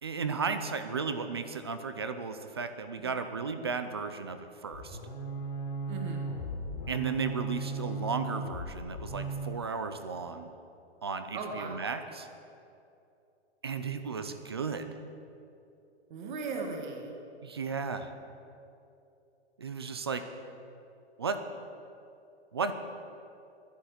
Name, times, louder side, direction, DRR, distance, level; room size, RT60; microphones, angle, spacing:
voice 1, 0.0-5.0 6.9-10.5 11.0-12.3 13.6-14.9 17.4-18.1 19.6-20.2 21.2-21.4 22.5-22.7, right 5 dB, 25° right, 9 dB, 0.3 m, -34 dB
sound 1, 4.7-9.6, right 3 dB, 45° left, 2.1 m, -37 dB
voice 2, 5.9-6.3 11.3-11.9 16.1-17.1, right 4 dB, 40° right, 2 dB, 1.8 m, -37 dB
11.0 x 10.0 x 8.0 m, 2.7 s
hypercardioid pair, 165°, 34 cm